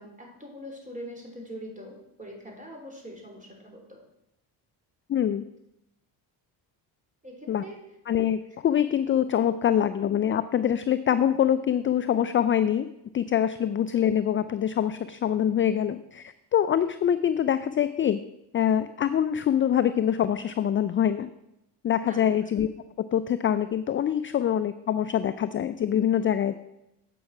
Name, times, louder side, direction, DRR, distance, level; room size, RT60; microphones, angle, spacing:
voice 1, 0.0-4.0 7.2-7.8 22.0-22.3, equal, 15° right, 0 dB, 3.5 m, -42 dB
voice 2, 5.1-5.4 7.5-7.6 8.1-12.9 13.1-18.2 18.5-21.3 21.8-22.7 23.1-26.5, left 9 dB, 30° left, 12 dB, 0.4 m, -24 dB
8.5 x 5.7 x 5.9 m, 0.86 s
supercardioid pair, 70°, 45 cm